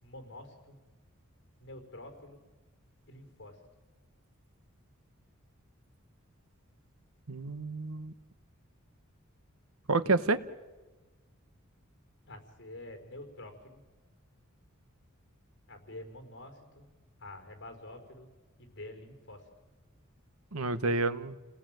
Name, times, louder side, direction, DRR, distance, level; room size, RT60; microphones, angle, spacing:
voice 1, 0.0-0.8 1.6-2.4 3.1-3.6 12.3-13.8 15.7-16.9 17.2-18.3 18.6-19.5, left 1 dB, 60° left, 6 dB, 4.8 m, -47 dB
voice 2, 7.3-8.1 9.9-10.4 20.5-21.4, right 3 dB, 90° right, 12 dB, 1.2 m, -29 dB
29.5 x 19.0 x 9.1 m, 1.2 s
head